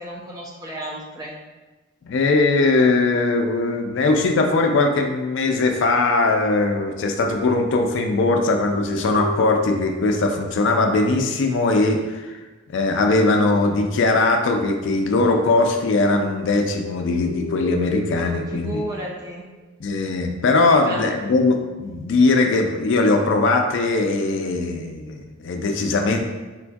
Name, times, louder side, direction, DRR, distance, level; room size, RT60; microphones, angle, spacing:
voice 1, 0.0-1.3 18.5-19.5 20.7-21.1, right 1 dB, 20° right, -2 dB, 0.3 m, -32 dB
voice 2, 2.0-12.4 12.7-18.8 19.8-26.2, left 3 dB, 60° left, 4 dB, 0.4 m, -20 dB
sound 1, 7.0-10.7 15.1-19.6, left 2 dB, 35° left, 0.8 m, -35 dB
3.7 x 2.3 x 2.5 m, 1.2 s
head